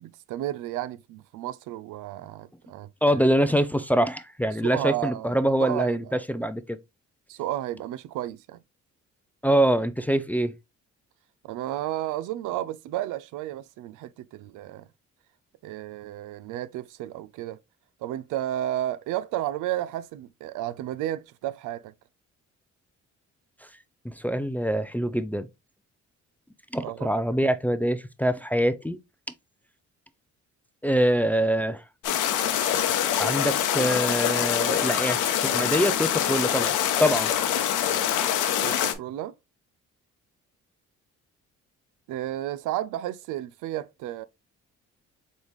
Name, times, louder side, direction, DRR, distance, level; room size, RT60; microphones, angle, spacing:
voice 1, 0.0-3.2 4.6-5.3 5.6-6.2 7.3-8.6 11.4-14.9 15.6-17.6 18.0-21.9 26.8-27.1 38.6-39.3 42.1-44.2, right 13 dB, 85° right, 0.5 m, -32 dB
voice 2, 3.0-6.8 9.4-10.5 24.0-25.5 26.7-29.0 30.8-31.8 33.2-35.2 35.4-36.7 37.0-37.3, equal, 5° left, 0.3 m, -24 dB
sound 1, 32.0-38.9, left 10 dB, 90° left, 0.7 m, -25 dB
4.1 x 3.5 x 3.0 m
cardioid pair, 90°, 30 cm